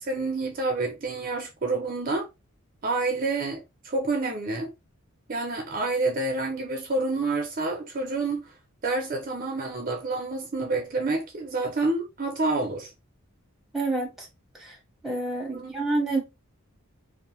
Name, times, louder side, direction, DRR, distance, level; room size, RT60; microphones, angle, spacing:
voice 1, 0.0-2.3 2.8-4.7 5.3-8.5 8.8-12.9 15.5-16.0, right 3 dB, 40° right, 0.5 m, -28 dB
voice 2, 13.7-14.3 14.6-14.8 15.0-16.2, right 2 dB, ahead, 0.8 m, -28 dB
2.6 x 2.0 x 2.9 m
head